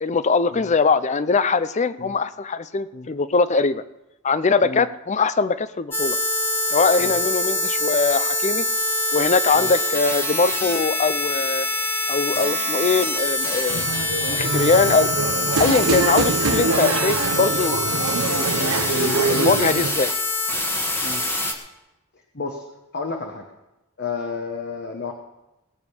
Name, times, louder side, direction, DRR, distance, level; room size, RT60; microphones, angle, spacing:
voice 1, 0.0-3.8 4.2-6.2 6.7-8.6 9.1-11.7 12.1-13.9 14.3-15.1 15.6-18.0 18.3-20.1, left 4 dB, 30° left, 14 dB, 0.5 m, -22 dB
sound 1, 5.9-21.5, left 1 dB, 10° left, 1.3 m, -24 dB
sound 2, 13.7-19.9, right 4 dB, 90° right, 0.9 m, -24 dB
voice 2, 22.3-22.6 22.9-23.4 24.0-25.1, left 4 dB, 45° left, 3 dB, 1.1 m, -31 dB
19.0 x 6.4 x 7.1 m, 0.96 s
head